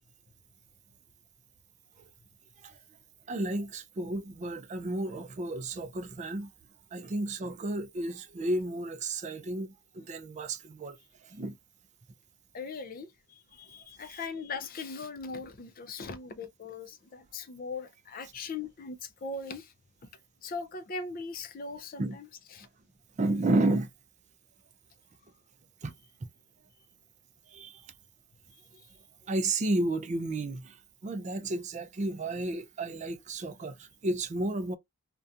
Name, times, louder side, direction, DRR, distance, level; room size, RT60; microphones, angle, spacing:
voice 1, 3.3-6.5 6.9-11.0 11.3-11.5 22.0-22.2 23.2-23.9 25.8-25.9 27.5-27.8 29.3-30.8 31.0-34.8, right 2 dB, 30° right, 0.3 m, -32 dB
voice 2, 12.5-13.1 13.5-19.7 20.4-22.7, left 4 dB, 40° left, 0.4 m, -39 dB
2.7 x 2.2 x 2.4 m
head